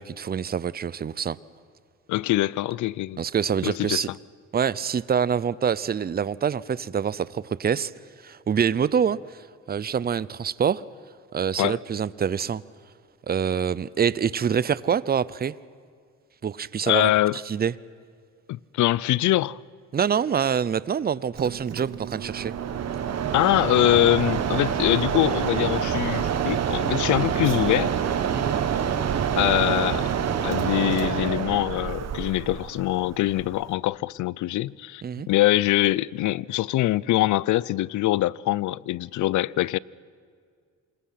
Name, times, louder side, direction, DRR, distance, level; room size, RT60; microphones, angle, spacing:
voice 1, 0.0-1.4 3.2-4.1 4.5-7.9 8.2-9.2 9.7-10.8 11.3-12.6 13.3-15.5 16.4-17.1 17.5-17.7 19.9-22.5 28.3-28.6 35.0-35.3, right 7 dB, 30° right, 0.7 m, -25 dB
voice 2, 2.1-3.2 3.6-4.1 11.6-11.8 16.9-17.4 18.5-19.6 23.3-27.9 29.4-30.1 30.4-35.0 35.3-39.8, left 16 dB, 75° left, 0.6 m, -23 dB
Mechanisms, 21.3-33.7, right 8 dB, 60° right, 1.8 m, -27 dB
27.0 x 21.0 x 5.9 m
cardioid pair, 90°, 30 cm